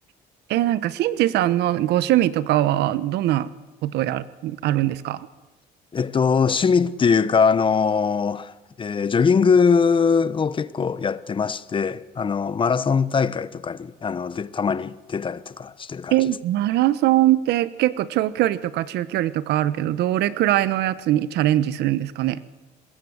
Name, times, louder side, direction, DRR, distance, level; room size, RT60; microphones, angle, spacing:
voice 1, 0.5-3.5 3.8-5.3 16.1-22.4, right 14 dB, 80° right, 1.2 m, -22 dB
voice 2, 5.9-16.1, left 5 dB, 30° left, 1.0 m, -21 dB
25.5 x 20.5 x 8.0 m
cardioid pair, 110°, 17 cm